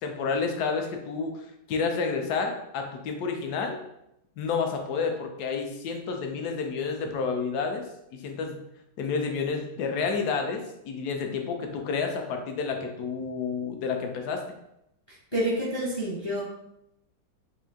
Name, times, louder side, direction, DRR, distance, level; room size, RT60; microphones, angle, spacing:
voice 1, 0.0-3.8 4.4-7.9 8.1-8.6 9.0-14.4, left 5 dB, 70° left, 4 dB, 1.0 m, -30 dB
voice 2, 15.1-16.4, equal, 35° left, -5 dB, 0.4 m, -29 dB
4.4 x 2.6 x 3.5 m, 0.83 s
omnidirectional pair, 2.1 m